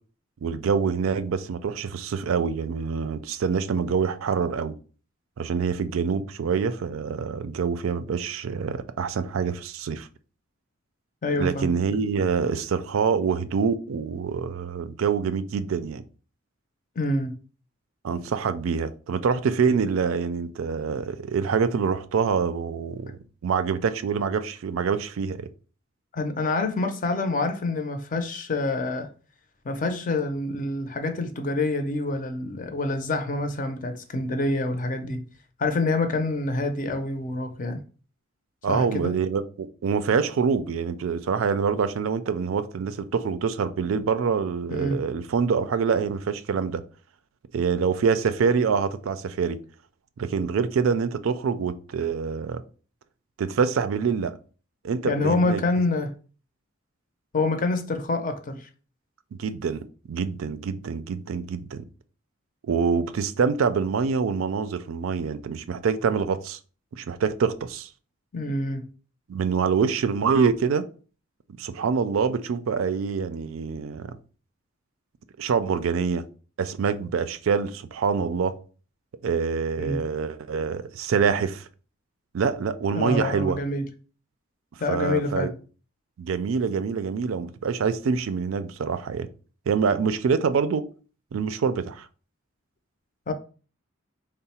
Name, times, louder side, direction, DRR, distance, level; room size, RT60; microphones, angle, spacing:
voice 1, 0.4-4.7 5.4-10.1 11.3-16.0 18.0-23.1 23.4-25.5 38.6-46.8 47.5-49.6 50.2-52.6 53.4-54.3 54.8-55.6 59.4-61.8 62.7-66.6 66.9-67.9 69.3-70.8 71.6-74.1 75.4-76.2 76.6-78.5 79.2-81.7 82.3-83.6 84.9-85.5 86.2-89.3 89.7-90.8 91.3-92.1, right 6 dB, 80° right, 0.4 m, -25 dB
voice 2, 11.2-11.7 17.0-17.4 26.1-29.1 29.6-35.3 35.6-37.8 38.7-39.2 44.7-45.0 55.0-56.1 57.3-58.7 68.3-68.9 79.8-80.0 82.9-83.9 84.8-85.5 93.3-93.4, left 2 dB, 40° left, 0.5 m, -27 dB
3.7 x 2.1 x 4.2 m
head